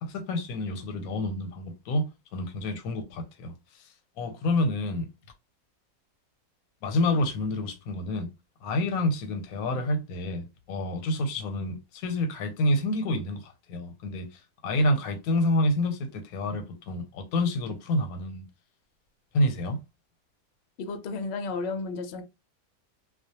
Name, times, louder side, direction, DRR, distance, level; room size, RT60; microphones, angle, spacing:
voice 1, 0.0-2.0 2.3-3.9 4.2-5.1 6.8-8.3 8.6-18.5 19.3-19.8, left 1 dB, 90° left, 1.0 m, -28 dB
voice 2, 20.8-22.2, left 3 dB, 65° left, 0.7 m, -33 dB
2.3 x 2.1 x 2.8 m
omnidirectional pair, 1.5 m